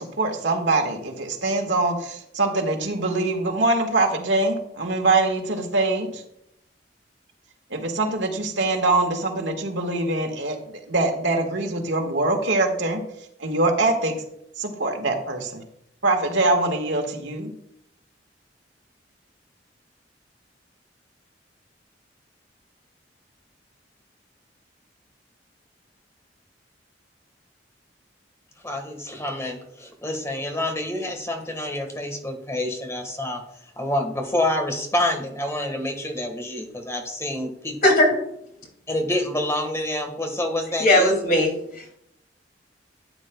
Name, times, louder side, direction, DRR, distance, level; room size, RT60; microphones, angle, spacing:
voice 1, 0.0-6.2 7.7-13.0 13.4-14.2 14.6-15.6 16.0-17.5, right 2 dB, 85° right, 3 dB, 1.6 m, -23 dB
voice 2, 28.6-33.4 33.8-37.8 38.9-41.1, left 1 dB, 15° left, 5 dB, 1.5 m, -27 dB
voice 3, 37.8-38.2 40.8-42.0, left 1 dB, 55° left, 1 dB, 2.4 m, -19 dB
12.5 x 9.1 x 2.3 m, 0.76 s
head